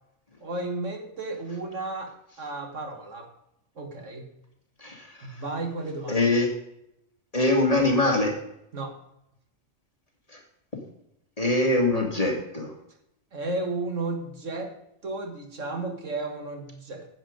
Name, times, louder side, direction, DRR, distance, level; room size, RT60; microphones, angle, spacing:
voice 1, 0.4-3.3 3.8-4.3 5.2-6.2 8.7-9.0 13.3-14.7 15.0-17.1, right 2 dB, 70° right, 4 dB, 2.1 m, -33 dB
voice 2, 4.8-5.4 6.1-6.5 7.3-8.4 10.3-10.4 10.7-10.8 11.4-12.7, left 2 dB, 25° left, 0 dB, 2.4 m, -23 dB
10.5 x 8.6 x 5.1 m, 0.79 s
omnidirectional pair, 1.4 m